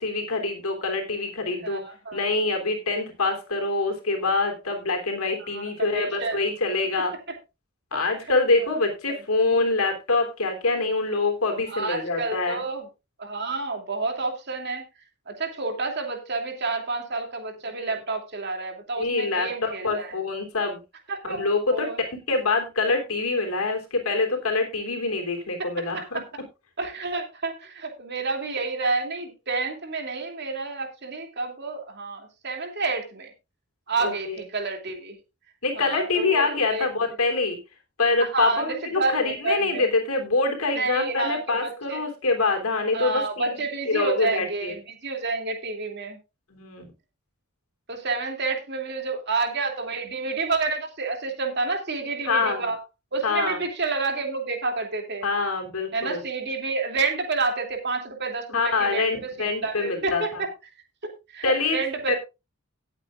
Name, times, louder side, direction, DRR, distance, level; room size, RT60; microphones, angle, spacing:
voice 1, 0.0-1.8 2.1-7.1 7.9-12.6 17.8-17.9 19.0-20.8 21.2-26.2 34.0-34.4 35.6-37.6 38.0-43.6 43.9-44.7 46.5-46.8 52.2-52.7 53.2-53.6 55.2-56.2 58.5-60.4 61.4-61.8 62.1-62.2, left 3 dB, 85° left, 4 dB, 3.4 m, -25 dB
voice 2, 1.6-2.3 5.4-6.4 7.9-8.0 8.6-9.2 11.7-12.9 13.2-14.8 15.3-20.1 21.1-22.0 25.9-26.1 26.8-33.3 33.9-35.2 35.8-36.9 38.2-39.9 40.8-42.0 42.9-46.2 47.9-52.8 53.1-55.3 55.9-60.5 61.3-62.1, right 3 dB, 50° right, 4 dB, 2.7 m, -29 dB
18.5 x 8.2 x 2.5 m, 0.26 s
head